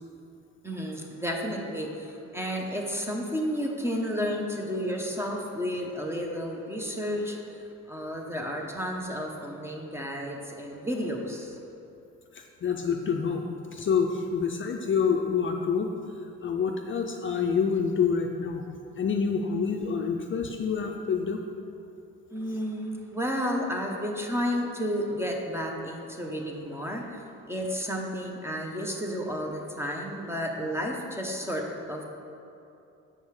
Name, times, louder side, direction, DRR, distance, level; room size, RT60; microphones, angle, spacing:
voice 1, 0.6-7.6 7.9-11.5 22.3-27.2 27.5-32.0, equal, 10° right, 0 dB, 0.9 m, -32 dB
voice 2, 12.3-13.4 13.7-15.9 16.4-18.6 19.0-21.4, left 6 dB, 40° left, 3 dB, 0.5 m, -27 dB
6.8 x 5.3 x 4.8 m, 2.7 s
cardioid pair, 90°, 30 cm